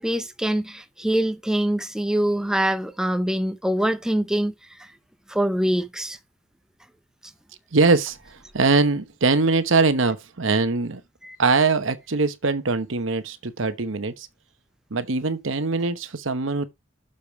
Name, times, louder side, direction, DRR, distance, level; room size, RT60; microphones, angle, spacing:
voice 1, 0.0-4.5 4.8-4.9 5.3-6.2 11.2-11.4, right 1 dB, 5° right, 0.6 m, -24 dB
voice 2, 7.7-11.0 11.4-14.3 14.9-16.7, right 3 dB, 70° right, 1.0 m, -22 dB
6.9 x 5.3 x 4.5 m
head